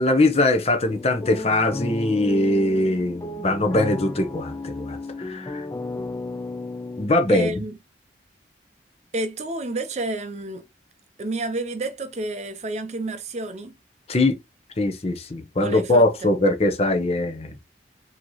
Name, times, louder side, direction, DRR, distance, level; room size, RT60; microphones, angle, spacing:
voice 1, 0.0-5.7 7.0-7.5 14.1-14.4 14.8-17.6, left 2 dB, 35° left, 0.7 m, -21 dB
sound 1, 0.9-7.1, left 2 dB, 15° left, 0.4 m, -33 dB
voice 2, 7.3-7.8 9.1-10.6 11.2-13.7 15.6-16.0, right 2 dB, 40° right, 0.5 m, -30 dB
5.0 x 2.9 x 3.0 m
head